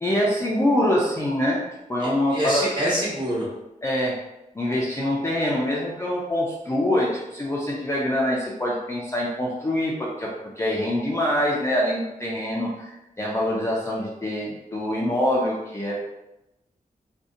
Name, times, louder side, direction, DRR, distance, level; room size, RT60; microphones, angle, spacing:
voice 1, 0.0-1.6 1.9-2.8 3.8-4.2 4.5-15.9, left 1 dB, 20° left, -4 dB, 0.3 m, -25 dB
voice 2, 2.0-3.5, equal, 30° right, -7 dB, 1.1 m, -26 dB
2.6 x 2.1 x 2.4 m, 0.94 s
wide cardioid pair, 115°, 15 cm